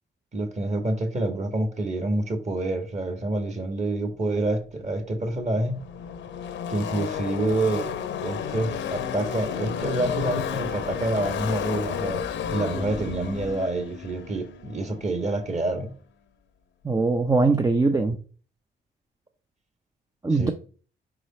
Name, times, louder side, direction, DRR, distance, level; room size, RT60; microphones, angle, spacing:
voice 1, 0.3-5.8 6.7-7.9 8.2-12.2 12.5-15.9 20.3-20.5, right 2 dB, 35° right, 6 dB, 1.7 m, -27 dB
Car passing by / Race car auto racing, 4.7-4.8 5.0-15.6, left 8 dB, 70° left, 0.8 m, -32 dB
voice 2, 16.8-18.2 20.2-20.5, right 3 dB, 15° right, 6 dB, 0.6 m, -21 dB
4.9 x 4.7 x 4.3 m, 0.39 s
cardioid pair, 90°, 20 cm